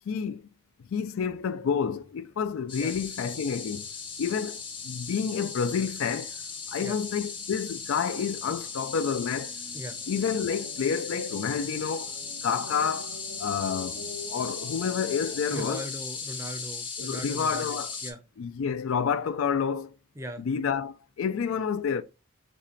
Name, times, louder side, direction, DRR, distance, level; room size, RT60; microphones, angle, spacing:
voice 1, 0.1-0.4 0.9-3.9 4.2-6.4 6.7-9.5 10.1-12.1 12.4-15.9 17.0-17.9 18.4-20.0 20.4-22.0, left 6 dB, 70° left, 0.4 m, -29 dB
sound 1, 1.7-15.8, left 1 dB, 70° right, 0.8 m, -49 dB
sound 2, 2.7-18.1, left 5 dB, 25° left, 0.7 m, -37 dB
voice 2, 15.5-18.2 20.2-20.4, equal, 15° right, 0.6 m, -39 dB
4.1 x 3.2 x 3.0 m
head